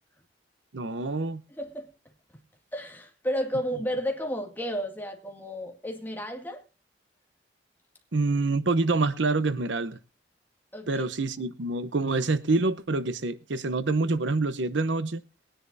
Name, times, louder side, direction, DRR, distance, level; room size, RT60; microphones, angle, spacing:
voice 1, 0.7-1.4 8.1-10.0 10.9-15.2, right 3 dB, 80° right, 0.8 m, -26 dB
voice 2, 1.5-1.9 2.7-6.6 10.7-11.0, equal, 10° left, 2.1 m, -32 dB
21.5 x 10.0 x 2.7 m
head